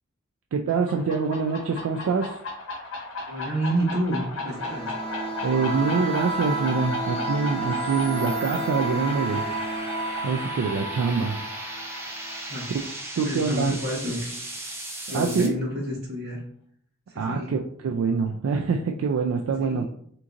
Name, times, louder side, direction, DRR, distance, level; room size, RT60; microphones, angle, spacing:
voice 1, 0.5-2.4 5.4-9.4 10.2-11.4 13.2-13.7 15.1-15.5 17.2-19.9, right 5 dB, 75° right, 3 dB, 0.3 m, -25 dB
sound 1, 0.7-14.1, left 2 dB, 70° left, 0.9 m, -37 dB
voice 2, 3.3-4.9 12.5-12.7 13.2-14.5 15.1-16.4 17.1-17.5 19.6-19.9, equal, 50° right, -3 dB, 1.2 m, -29 dB
sound 2, 4.3-15.5, right 1 dB, 10° right, 0.4 m, -39 dB
sound 3, 4.4-13.0, right 2 dB, 35° right, 0.8 m, -32 dB
3.6 x 3.0 x 2.5 m, 0.65 s
head